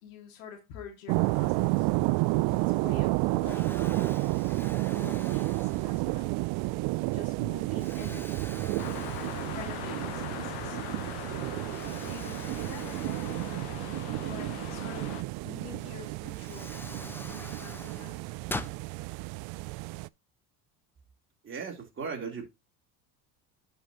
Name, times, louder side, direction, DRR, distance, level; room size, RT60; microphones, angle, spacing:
voice 1, 0.0-1.9 2.5-4.3 4.9-8.9 9.4-10.8 11.5-13.7 14.2-15.2 15.4-18.3, left 6 dB, 85° left, 2.3 m, -47 dB
sound 1, 1.1-20.1, right 22 dB, 65° right, 0.5 m, -31 dB
Explosion, 2.7-3.1 3.4-6.3 6.9-7.0 7.7-10.0 10.4-10.5 11.7-14.3 15.8-15.9 16.3-18.8, left 2 dB, 5° left, 0.5 m, -44 dB
sound 2, 8.8-15.2, left 16 dB, 70° left, 0.8 m, -41 dB
voice 2, 21.4-22.5, right 5 dB, 30° right, 3.2 m, -37 dB
9.6 x 5.4 x 2.9 m
supercardioid pair, 95°, 41 cm